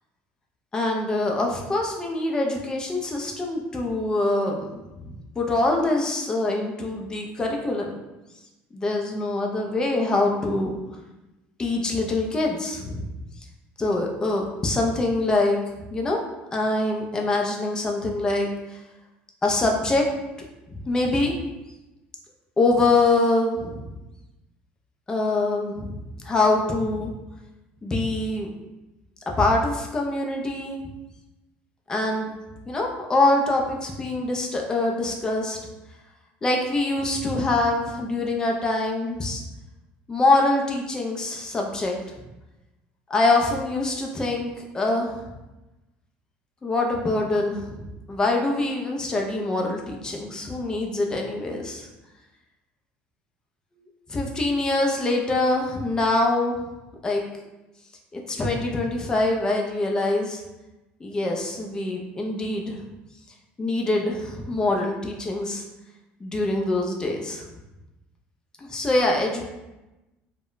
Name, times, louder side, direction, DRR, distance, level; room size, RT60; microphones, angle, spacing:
voice 1, 0.7-7.9 8.7-10.8 11.6-13.1 13.8-15.6 15.9-16.2 16.5-18.8 19.4-20.1 20.9-21.3 22.6-23.9 25.1-27.1 27.8-28.5 29.4-30.8 31.9-32.3 32.7-35.6 36.4-39.4 40.1-41.9 43.1-45.3 46.6-51.9 54.1-56.7 57.0-57.2 58.1-60.4 61.0-62.8 63.6-65.6 66.2-67.4 68.6-69.5, left 2 dB, 15° left, 0 dB, 0.4 m, -24 dB
2.1 x 2.0 x 3.8 m, 1.0 s
cardioid pair, 145°, 4 cm